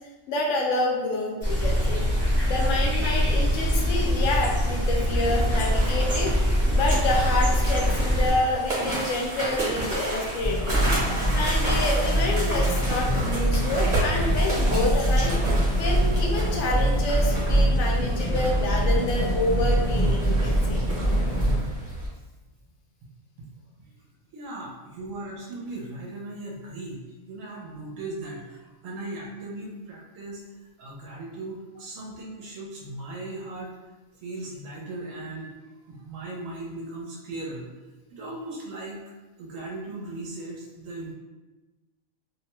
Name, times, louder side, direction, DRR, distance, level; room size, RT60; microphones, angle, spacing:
voice 1, 0.3-2.0 2.5-6.3 6.7-15.4 15.7-20.8, left 2 dB, 75° left, 0 dB, 0.9 m, -28 dB
sound 1, 1.4-8.3, equal, 15° right, 0.5 m, -23 dB
sound 2, 5.2-22.1, right 1 dB, 40° right, 1.0 m, -32 dB
sound 3, 10.4-21.6, equal, 30° left, 0.6 m, -23 dB
voice 2, 24.3-30.4 30.8-33.7 34.2-35.5 35.9-37.7 38.1-39.0 39.4-41.1, right 2 dB, 75° right, -2 dB, 1.0 m, -37 dB
2.6 x 2.2 x 2.9 m, 1.2 s
omnidirectional pair, 1.4 m